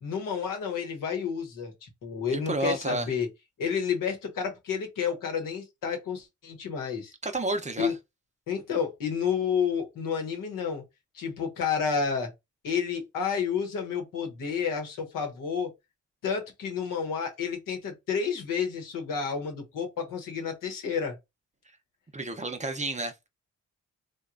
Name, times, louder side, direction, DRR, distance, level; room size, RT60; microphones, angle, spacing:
voice 1, 0.0-3.3 3.6-7.1 7.8-7.9 8.5-10.8 11.1-12.3 12.6-15.7 16.2-21.2, left 6 dB, 90° left, 0.9 m, -30 dB
voice 2, 2.3-3.1 7.2-7.9 22.1-23.3, right 2 dB, 20° right, 0.6 m, -30 dB
3.0 x 2.2 x 2.4 m
cardioid pair, 55°, 32 cm